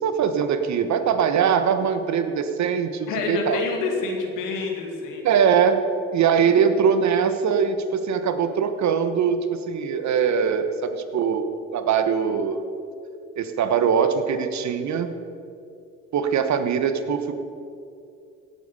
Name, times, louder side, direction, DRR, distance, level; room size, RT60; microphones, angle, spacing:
voice 1, 0.0-3.6 5.2-11.5 11.7-12.7 13.4-15.1 16.1-17.4, right 7 dB, 60° right, 9 dB, 1.3 m, -22 dB
voice 2, 3.1-5.3, left 4 dB, 80° left, 2 dB, 2.3 m, -27 dB
17.5 x 8.4 x 5.5 m, 2.6 s
supercardioid pair, 65°, 32 cm